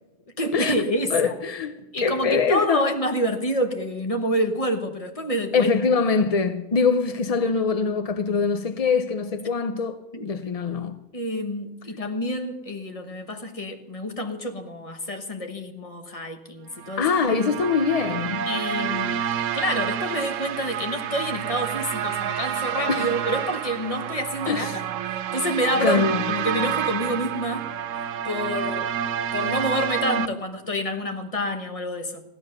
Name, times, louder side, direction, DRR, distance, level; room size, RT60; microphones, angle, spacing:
voice 1, 0.4-1.3 1.9-5.7 10.1-10.3 11.1-17.1 18.5-19.2 19.5-24.9 25.3-27.7 28.2-29.0 29.3-32.2, equal, 30° left, 1.3 m, -28 dB
voice 2, 1.1-2.9 5.5-10.0 10.2-11.0 17.0-18.5 22.9-23.1 24.5-24.8 25.8-26.2, left 5 dB, 50° left, 0.4 m, -23 dB
sound 1, 16.8-30.3, right 9 dB, 75° right, 1.0 m, -29 dB
15.0 x 11.0 x 6.6 m
omnidirectional pair, 1.3 m